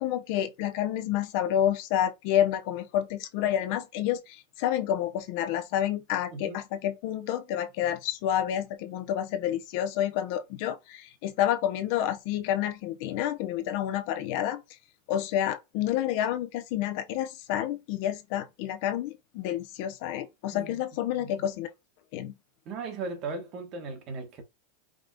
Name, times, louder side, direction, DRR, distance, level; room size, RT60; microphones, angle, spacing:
voice 1, 0.0-14.6 15.1-21.7 22.1-22.3, left 11 dB, 55° left, 0.8 m, -29 dB
voice 2, 21.1-21.5 22.6-24.4, right 4 dB, 40° right, 1.3 m, -37 dB
5.1 x 2.4 x 3.7 m
supercardioid pair, 150°, 0 cm